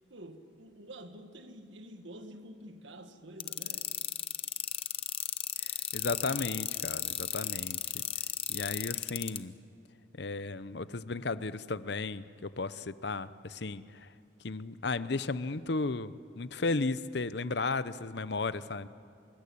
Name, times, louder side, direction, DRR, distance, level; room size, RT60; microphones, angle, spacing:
voice 1, 0.1-4.0, right 1 dB, 75° right, 1.7 m, -48 dB
sound 1, 3.4-9.4, left 10 dB, 30° left, 0.8 m, -34 dB
voice 2, 5.6-7.8 8.5-9.5 10.2-13.8 14.4-18.9, left 3 dB, 60° left, 0.8 m, -34 dB
25.5 x 23.5 x 8.6 m
head